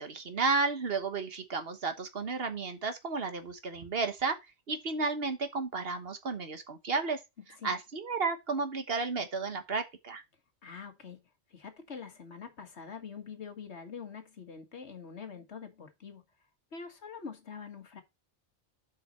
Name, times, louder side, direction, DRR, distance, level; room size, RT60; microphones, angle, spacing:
voice 1, 0.0-4.4 4.7-7.2 7.6-10.2, right 4 dB, 60° right, 1.4 m, -32 dB
voice 2, 10.6-11.2 11.5-16.2 16.7-18.0, left 6 dB, 70° left, 1.9 m, -45 dB
8.2 x 5.6 x 4.2 m
omnidirectional pair, 1.2 m